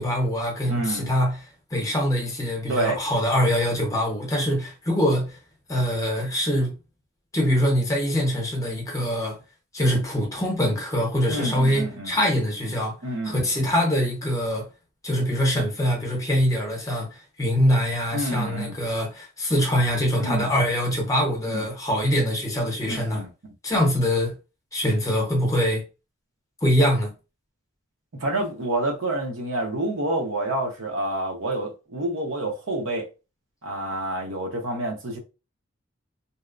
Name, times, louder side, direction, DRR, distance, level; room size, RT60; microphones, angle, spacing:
voice 1, 0.0-1.4 1.7-5.4 5.7-6.7 7.3-9.4 9.7-13.0 13.2-14.7 15.0-17.1 17.4-23.2 23.6-24.4 24.7-25.8 26.6-27.1, equal, 15° left, 0.7 m, -23 dB
voice 2, 0.7-1.1 2.7-3.0 11.3-12.2 13.0-13.5 18.1-18.8 20.2-20.5 21.5-21.6 22.9-23.3 28.2-33.1 33.6-35.2, right 1 dB, 80° right, 0.8 m, -28 dB
2.7 x 2.1 x 2.4 m
head